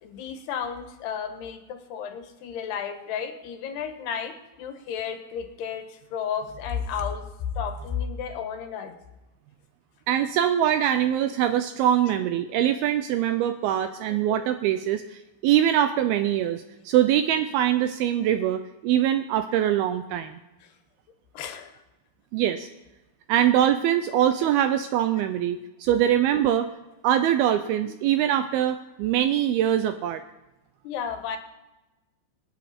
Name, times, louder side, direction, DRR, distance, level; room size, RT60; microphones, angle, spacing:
voice 1, 0.0-7.2 7.6-8.9 14.1-14.4 21.3-21.7 27.8-27.9 30.8-31.4, left 7 dB, 75° left, 7 dB, 3.2 m, -33 dB
voice 2, 10.1-20.4 22.3-22.7 23.3-26.7 27.0-30.2, right 11 dB, 85° right, 9 dB, 2.2 m, -23 dB
26.5 x 9.1 x 4.2 m, 1.0 s
omnidirectional pair, 4.9 m